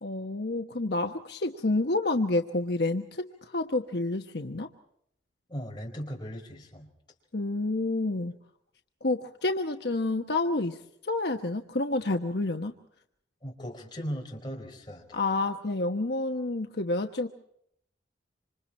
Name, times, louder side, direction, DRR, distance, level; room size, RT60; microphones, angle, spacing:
voice 1, 0.0-4.7 7.3-8.4 9.0-12.7 15.1-17.3, left 2 dB, 65° left, 4 dB, 1.2 m, -29 dB
voice 2, 5.5-6.9 13.4-15.2, equal, 25° left, 1 dB, 4.5 m, -38 dB
27.0 x 26.5 x 4.3 m, 0.71 s
head